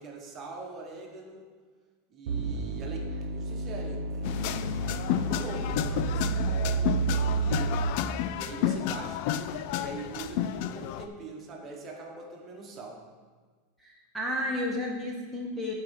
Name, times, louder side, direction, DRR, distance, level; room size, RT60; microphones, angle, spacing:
voice 1, 0.0-1.5 2.1-4.6 5.1-7.8 8.3-13.0, right 3 dB, 30° right, 1 dB, 1.4 m, -43 dB
sound 1, 2.3-8.2, right 4 dB, 80° right, 0.8 m, -31 dB
sound 2, 4.2-11.1, left 10 dB, 60° left, 0.4 m, -31 dB
voice 2, 13.8-15.7, left 1 dB, ahead, -3 dB, 1.0 m, -32 dB
8.5 x 4.8 x 6.5 m, 1.5 s
supercardioid pair, 140°, 0 cm